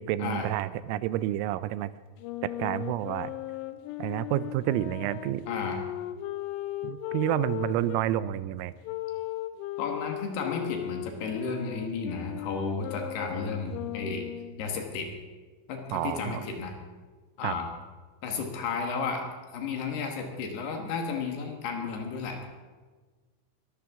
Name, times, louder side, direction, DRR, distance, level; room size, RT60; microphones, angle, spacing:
voice 1, 0.0-1.9 2.4-3.3 4.0-5.4 6.8-8.7 15.9-16.4 17.4-17.6, right 14 dB, 90° right, 16 dB, 3.2 m, -29 dB
Wind instrument woodwind instrument, 2.2-8.0 8.8-14.6, left 14 dB, 80° left, 2.7 m, -37 dB
voice 2, 5.5-5.8 9.8-14.2 14.6-15.1 15.7-16.7 17.4-17.7 18.2-19.2 19.5-22.5, left 4 dB, 65° left, 3 dB, 3.1 m, -33 dB
22.0 x 13.0 x 3.6 m, 1.4 s
omnidirectional pair, 5.7 m